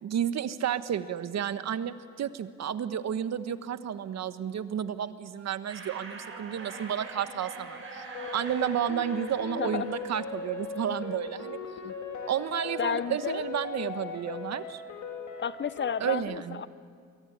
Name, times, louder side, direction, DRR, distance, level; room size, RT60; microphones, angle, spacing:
voice 1, 0.0-8.1 8.3-11.6 12.3-14.8 16.0-16.6, right 9 dB, 60° right, 12 dB, 1.3 m, -31 dB
sound 1, 5.7-11.2, right 3 dB, 45° right, 7.2 m, -44 dB
sound 2, 8.1-16.1, left 5 dB, 65° left, 3.5 m, -38 dB
voice 2, 12.8-13.4 15.4-16.7, left 7 dB, 40° left, 17 dB, 0.7 m, -32 dB
24.0 x 24.0 x 10.0 m, 2.1 s
cardioid pair, 90°, 30 cm